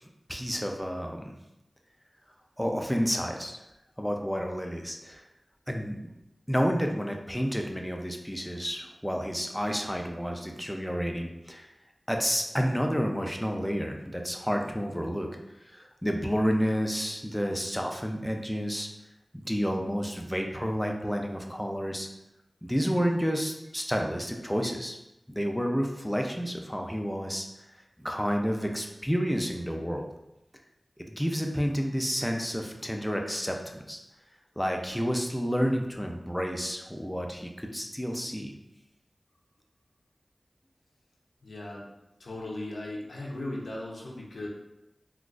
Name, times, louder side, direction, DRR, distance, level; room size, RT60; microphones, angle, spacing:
voice 1, 0.0-1.3 2.6-3.6 4.0-5.3 5.7-6.0 6.5-11.7 12.1-15.3 15.7-18.9 19.3-22.1 22.6-25.0 25.3-27.5 28.0-30.1 31.0-33.6 33.9-34.0 34.6-38.5, equal, 5° left, 2 dB, 0.4 m, -30 dB
voice 2, 41.4-41.9 42.2-44.5, left 1 dB, 85° left, -2 dB, 0.6 m, -37 dB
3.8 x 2.4 x 2.4 m, 0.90 s
wide cardioid pair, 65°, 0 cm